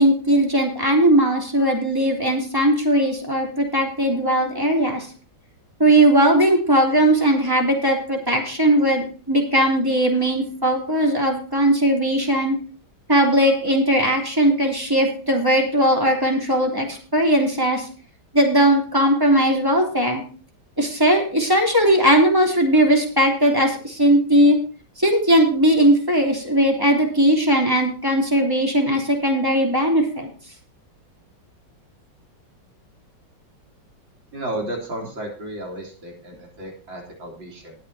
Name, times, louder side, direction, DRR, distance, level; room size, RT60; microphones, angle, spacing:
voice 1, 0.0-5.1 5.8-12.5 13.1-17.9 18.3-20.2 20.8-24.6 25.0-30.3, right 1 dB, 10° right, 0 dB, 3.3 m, -18 dB
voice 2, 34.3-37.8, right 1 dB, 75° right, -1 dB, 4.3 m, -33 dB
20.0 x 8.2 x 2.8 m, 0.39 s
omnidirectional pair, 2.1 m